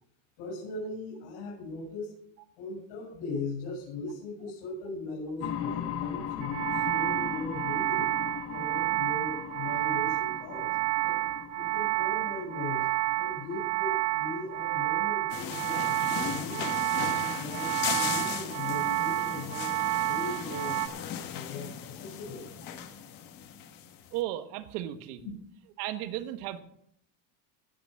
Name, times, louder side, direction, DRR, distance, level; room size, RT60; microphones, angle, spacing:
voice 1, 0.4-2.1 2.5-8.1 8.5-10.8 11.0-11.2 11.5-12.9 13.2-16.7 17.2-19.7 20.0-20.8 21.3-22.4 25.2-25.3, left 3 dB, 65° left, -3 dB, 6.6 m, -39 dB
sound 1, 5.4-15.0, left 8 dB, 30° left, 0.9 m, -39 dB
sound 2, 6.4-20.9, right 17 dB, 35° right, 0.5 m, -30 dB
sound 3, 15.3-24.1, left 9 dB, 45° left, 1.4 m, -37 dB
voice 2, 24.1-25.2 25.8-26.6, right 13 dB, 70° right, 10 dB, 1.4 m, -34 dB
18.0 x 6.1 x 6.3 m, 0.69 s
cardioid pair, 165°, 48 cm